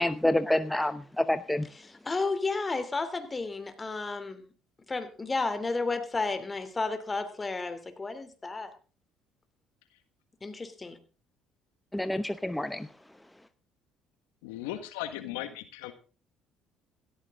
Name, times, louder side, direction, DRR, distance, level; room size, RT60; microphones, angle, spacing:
voice 1, 0.0-1.7 11.9-12.9, left 1 dB, 5° left, 12 dB, 0.8 m, -28 dB
voice 2, 1.8-4.5 4.9-8.7 10.4-11.0, left 3 dB, 25° left, 9 dB, 2.9 m, -32 dB
voice 3, 14.4-15.9, left 13 dB, 85° left, 10 dB, 1.5 m, -37 dB
17.0 x 14.0 x 3.7 m, 0.36 s
supercardioid pair, 65°, 0 cm